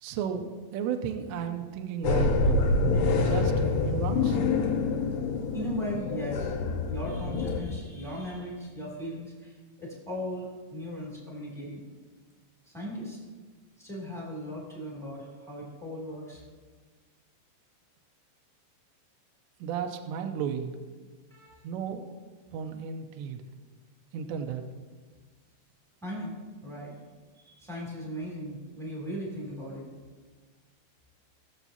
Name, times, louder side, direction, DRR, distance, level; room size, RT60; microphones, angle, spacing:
voice 1, 0.0-2.7 3.1-4.4 19.6-20.8 21.6-22.2 22.5-23.4 24.1-24.7, right 7 dB, 85° right, 5 dB, 2.7 m, -34 dB
sound 1, 2.0-7.6, left 3 dB, 80° left, 3.4 m, -26 dB
voice 2, 5.5-6.5 6.9-11.8 12.6-13.2 13.8-16.4 21.3-21.6 26.0-26.3 26.6-26.9 27.4-29.9, equal, ahead, -4 dB, 0.9 m, -38 dB
21.0 x 7.2 x 2.8 m, 1.4 s
omnidirectional pair, 5.5 m